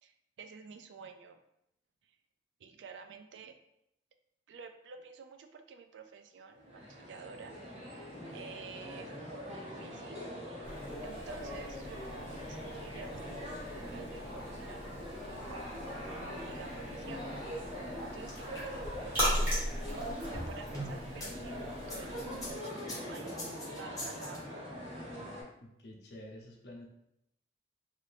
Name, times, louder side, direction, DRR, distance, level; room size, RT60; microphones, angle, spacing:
voice 1, 0.0-1.4 2.0-2.2 2.6-3.6 4.5-8.0 8.3-10.2 11.0-13.5 13.8-15.7 16.4-17.2 18.0-23.4 23.8-24.5, right 5 dB, 75° right, 7 dB, 0.3 m, -50 dB
sound 1, 6.6-25.4, equal, 35° right, 1.2 m, -42 dB
sound 2, 10.6-22.5, equal, 10° right, 1.3 m, -40 dB
sound 3, 18.0-21.3 21.8-24.4, equal, 20° left, 0.7 m, -43 dB
voice 2, 25.6-26.9, left 1 dB, 60° left, 0 dB, 0.6 m, -49 dB
2.6 x 2.6 x 3.3 m, 0.79 s
head